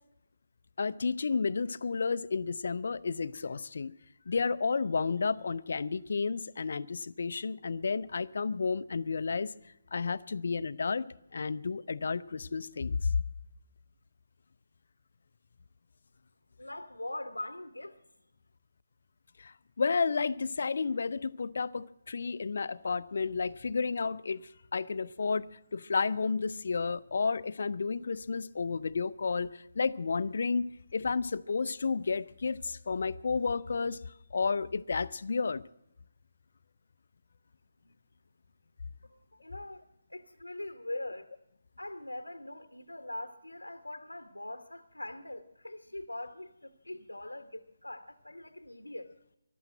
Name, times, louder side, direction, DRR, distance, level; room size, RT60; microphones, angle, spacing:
voice 1, 0.8-3.9 4.3-9.5 9.9-11.1 11.3-13.1 19.4-30.7 30.9-34.0 34.3-35.6, left 4 dB, 55° left, 0.5 m, -31 dB
voice 2, 16.6-18.0 37.8-37.9 39.0-39.8 40.1-41.3 41.8-49.1, left 1 dB, 85° left, 0.9 m, -42 dB
14.5 x 12.0 x 7.6 m
figure-of-eight pair, 145°, 0 cm